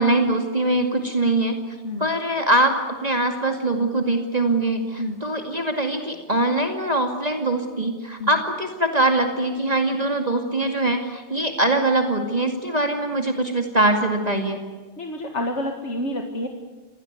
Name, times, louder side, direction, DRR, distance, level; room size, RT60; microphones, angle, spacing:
voice 1, 0.0-1.6 2.0-14.6, right 2 dB, 35° right, 4 dB, 2.4 m, -22 dB
voice 2, 15.0-16.5, left 1 dB, 85° left, 3 dB, 2.4 m, -29 dB
27.0 x 17.5 x 9.4 m, 1.4 s
omnidirectional pair, 1.2 m